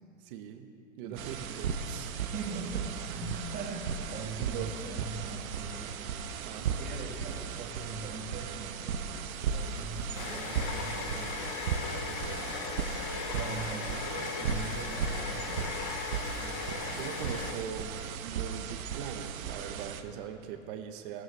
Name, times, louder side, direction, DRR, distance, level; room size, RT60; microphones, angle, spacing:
voice 1, 0.2-0.7 1.0-2.2 4.4-4.7 6.5-6.9 12.1-12.6 16.9-21.2, right 8 dB, 40° right, 6 dB, 0.9 m, -41 dB
sound 1, 1.2-20.0, right 6 dB, 80° right, 1.0 m, -36 dB
voice 2, 2.3-6.1 6.6-11.4 13.3-15.6 16.4-17.1, right 4 dB, 20° right, 0 dB, 1.7 m, -42 dB
sound 2, 9.3-18.0, left 6 dB, 25° left, 0.7 m, -38 dB
17.0 x 13.0 x 3.3 m, 2.6 s
hypercardioid pair, 145°, 42 cm